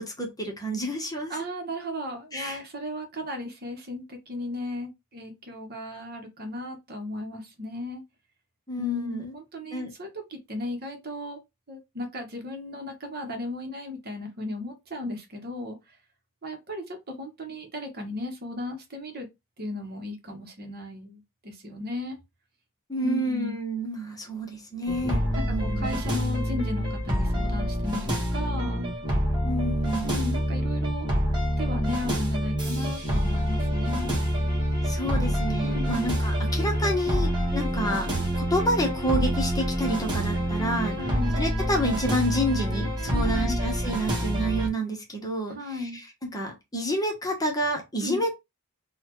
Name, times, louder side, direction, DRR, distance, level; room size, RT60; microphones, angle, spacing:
voice 1, 0.0-1.3 2.3-2.6 8.7-9.3 9.7-9.9 22.9-25.2 25.5-25.9 29.4-30.1 34.8-38.1 38.3-41.0 41.4-46.0 46.3-48.4, equal, 15° left, 1.0 m, -29 dB
voice 2, 1.3-8.0 8.7-11.4 11.7-16.0 16.4-19.3 19.6-22.2 23.0-23.6 25.3-25.4 25.7-28.9 30.1-31.1 31.6-34.1 35.6-36.1 41.0-41.4 43.1-43.6 45.5-46.0 48.0-48.2, left 1 dB, 45° right, 1.0 m, -35 dB
sound 1, 24.9-44.7, equal, 20° right, 1.4 m, -27 dB
4.0 x 2.3 x 3.0 m
head